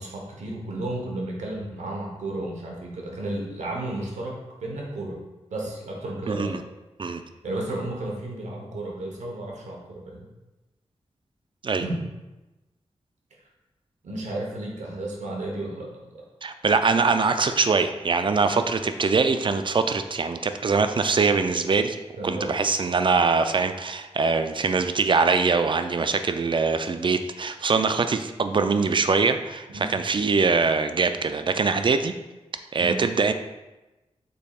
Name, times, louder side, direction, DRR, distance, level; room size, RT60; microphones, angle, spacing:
voice 1, 0.0-5.2 5.5-6.6 7.4-10.3 11.8-12.1 14.0-16.0 18.4-18.6 22.2-22.6 29.7-29.9 32.8-33.0, right 1 dB, 90° right, -1 dB, 0.9 m, -33 dB
voice 2, 6.3-6.6 7.0-7.2 11.6-11.8 16.4-22.0 22.2-32.1 32.7-33.3, right 4 dB, 45° right, 9 dB, 0.4 m, -23 dB
5.3 x 4.1 x 2.3 m, 1.1 s
cardioid pair, 50°, 12 cm